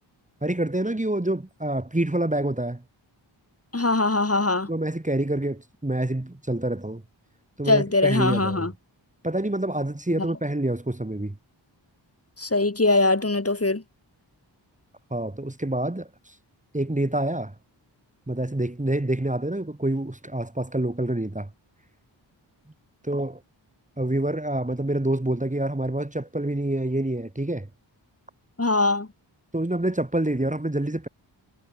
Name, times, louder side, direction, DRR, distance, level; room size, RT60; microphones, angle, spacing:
voice 1, 0.4-2.8 4.7-7.0 7.6-8.7 9.2-11.4 15.1-16.3 16.7-17.5 18.3-21.5 23.0-23.4 24.0-27.7 29.5-31.1, right 1 dB, 15° right, 3.2 m, -27 dB
voice 2, 3.7-4.7 7.7-8.7 12.4-13.8 28.6-29.1, left 2 dB, 30° left, 3.9 m, -22 dB
cardioid pair, 55°, 46 cm